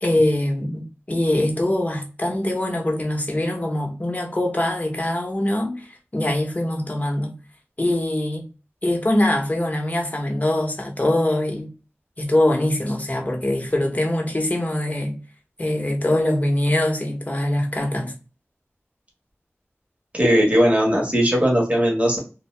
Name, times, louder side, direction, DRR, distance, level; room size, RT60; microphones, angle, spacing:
voice 1, 0.0-7.3 7.8-8.4 8.8-11.7 12.2-15.2 15.6-18.1, left 1 dB, 30° left, 0.9 m, -23 dB
voice 2, 20.1-22.2, equal, 25° right, 1.5 m, -18 dB
2.7 x 2.2 x 3.2 m
wide cardioid pair, 40°, 5 cm